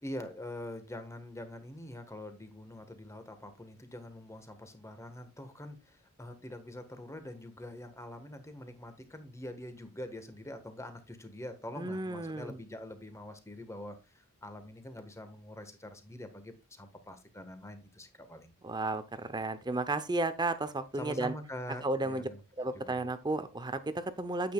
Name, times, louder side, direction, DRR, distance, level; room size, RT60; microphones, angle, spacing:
voice 1, 0.0-18.5 20.9-22.4 22.7-22.9, left 1 dB, 15° left, 1.4 m, -45 dB
voice 2, 11.8-12.6 18.6-21.3 21.8-22.3 22.6-24.5, right 2 dB, 20° right, 0.7 m, -33 dB
9.2 x 8.6 x 2.3 m
head